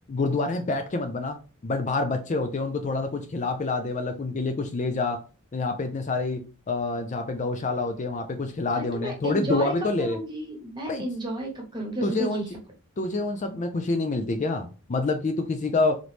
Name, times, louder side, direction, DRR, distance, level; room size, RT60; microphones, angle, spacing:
voice 1, 0.1-1.4 1.6-5.2 5.5-6.4 6.7-10.2 10.9-11.0 12.0-12.4 13.0-16.0, left 3 dB, 30° left, 5 dB, 0.4 m, -27 dB
voice 2, 8.7-12.5, right 1 dB, 20° right, 0 dB, 1.1 m, -32 dB
3.9 x 3.1 x 3.2 m, 0.34 s
head